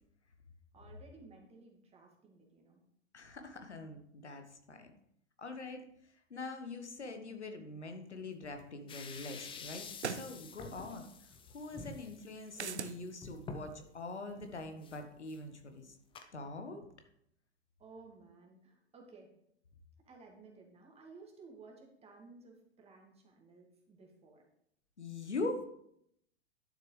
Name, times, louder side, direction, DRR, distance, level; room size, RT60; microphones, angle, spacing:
voice 1, 0.7-2.8 10.6-10.9 17.8-19.3 20.1-24.4, right 4 dB, 20° right, 0 dB, 2.2 m, -56 dB
voice 2, 3.1-4.9 5.4-11.0 11.5-16.0 16.3-16.8 25.0-25.6, left 2 dB, 80° left, 6 dB, 1.3 m, -43 dB
sound 1, 8.6-8.7 10.0-10.3 12.5-13.0, right 6 dB, 80° right, 0.7 m, -38 dB
sound 2, 8.9-13.9 14.3-14.4 14.8-15.0 15.3-15.4 16.2-16.3, left 4 dB, 15° left, 0.7 m, -49 dB
11.5 x 6.8 x 3.3 m, 0.73 s
figure-of-eight pair, 95°, 34 cm